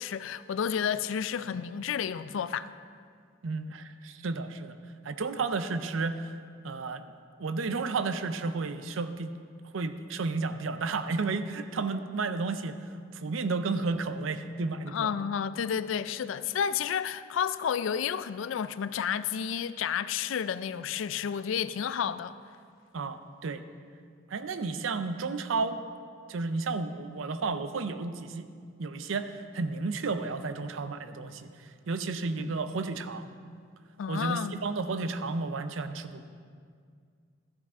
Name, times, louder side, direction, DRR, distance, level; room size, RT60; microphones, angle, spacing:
voice 1, 0.0-2.7 14.9-22.3 32.4-32.5 34.0-34.6, left 8 dB, 75° left, 0.4 m, -31 dB
voice 2, 3.4-4.8 5.0-6.4 6.6-7.1 7.4-9.3 9.7-15.1 22.9-23.6 24.3-25.8 26.3-28.5 28.8-33.3 34.1-36.2, right 3 dB, 80° right, 0.5 m, -32 dB
12.5 x 9.4 x 3.6 m
head